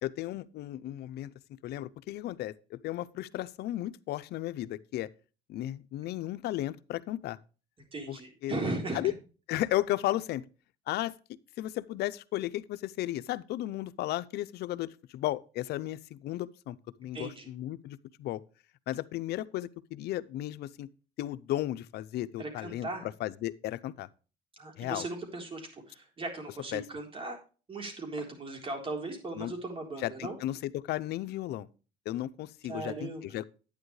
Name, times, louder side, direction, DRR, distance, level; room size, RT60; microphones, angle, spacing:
voice 1, 0.0-1.3 1.6-5.1 5.5-7.4 8.1-8.2 8.4-8.5 8.9-9.1 9.5-10.4 10.9-11.1 11.6-18.4 18.9-20.9 21.2-22.9 23.2-24.1 24.8-25.0 26.7-26.8 29.4-29.5 30.0-31.7 32.1-33.4, left 14 dB, 75° left, 0.6 m, -34 dB
voice 2, 7.9-9.1 17.1-17.5 22.4-23.1 24.6-27.4 27.7-30.4 32.7-33.2, right 2 dB, 30° right, 3.8 m, -37 dB
10.5 x 9.6 x 3.2 m
cardioid pair, 110°, 17 cm